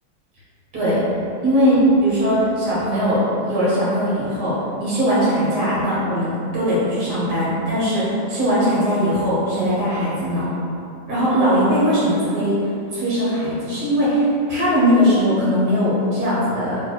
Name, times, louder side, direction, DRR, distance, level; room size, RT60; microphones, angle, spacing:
voice 1, 1.4-10.5 11.1-12.5 12.9-16.8, equal, 70° right, -9 dB, 1.8 m, -20 dB
3.1 x 3.1 x 4.5 m, 2.6 s
omnidirectional pair, 1.9 m